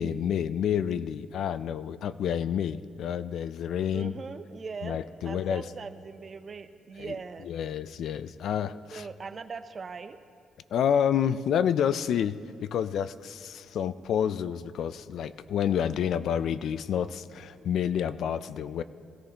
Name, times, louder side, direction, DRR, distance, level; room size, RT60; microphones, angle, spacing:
voice 1, 0.0-4.1 4.8-5.6 7.0-7.2 7.4-9.1 10.7-18.8, left 8 dB, 70° left, 15 dB, 0.3 m, -29 dB
voice 2, 3.9-7.5 8.9-10.2, right 5 dB, 40° right, 10 dB, 0.6 m, -40 dB
16.5 x 14.5 x 2.9 m, 2.4 s
cardioid pair, 90°, 0 cm